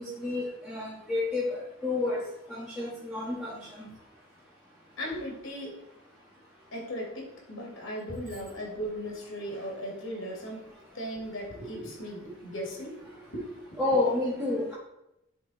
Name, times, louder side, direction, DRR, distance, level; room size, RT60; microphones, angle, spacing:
voice 1, 0.0-2.2 2.5-3.7 13.8-14.7, left 2 dB, ahead, -9 dB, 1.6 m, -30 dB
voice 2, 5.0-5.8 6.7-10.7 10.9-13.5, equal, 90° left, -1 dB, 2.5 m, -37 dB
10.0 x 3.6 x 4.4 m, 0.85 s
head